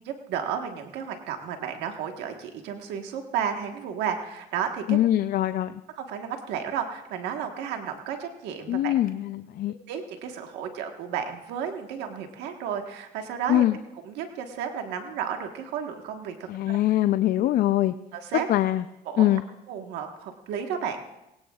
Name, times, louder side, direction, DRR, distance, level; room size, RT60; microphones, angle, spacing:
voice 1, 0.3-5.0 5.9-8.9 9.9-13.6 14.1-16.8 18.1-18.5 19.1-19.3 19.7-21.0, right 8 dB, 90° right, 4 dB, 1.4 m, -32 dB
voice 2, 4.9-5.8 8.7-9.7 13.5-13.8 16.5-17.9 18.5-18.8 19.2-19.4, left 13 dB, 60° left, 11 dB, 0.5 m, -23 dB
21.5 x 17.0 x 2.4 m, 0.89 s
cardioid pair, 110°, 17 cm